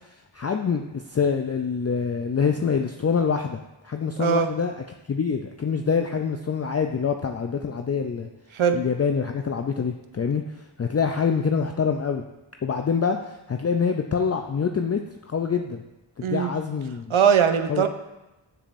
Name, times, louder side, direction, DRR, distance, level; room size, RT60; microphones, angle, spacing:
voice 1, 0.3-4.7 5.1-8.3 8.7-10.4 10.8-12.2 12.6-15.0 15.3-15.8 16.2-17.1 17.7-17.9, left 6 dB, 35° left, 4 dB, 0.4 m, -25 dB
voice 2, 17.1-17.9, right 7 dB, 80° right, 8 dB, 0.6 m, -20 dB
7.0 x 6.9 x 2.5 m, 0.99 s
wide cardioid pair, 45°, 48 cm